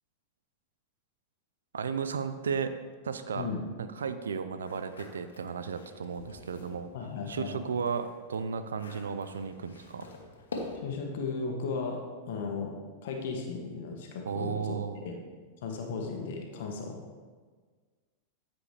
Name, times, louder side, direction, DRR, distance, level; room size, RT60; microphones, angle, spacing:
voice 1, 1.7-2.7 3.0-3.5 3.8-6.9 7.3-10.1 14.3-15.0, right 6 dB, 80° right, 11 dB, 0.5 m, -34 dB
sound 1, 4.6-6.8 7.2-11.0, left 3 dB, 80° left, 1.4 m, -45 dB
voice 2, 6.9-7.6 10.8-12.7 13.0-14.8 15.0-15.2 15.6-17.0, left 4 dB, 65° left, 2 dB, 1.3 m, -35 dB
13.0 x 5.2 x 3.3 m, 1.5 s
hypercardioid pair, 100°, 0 cm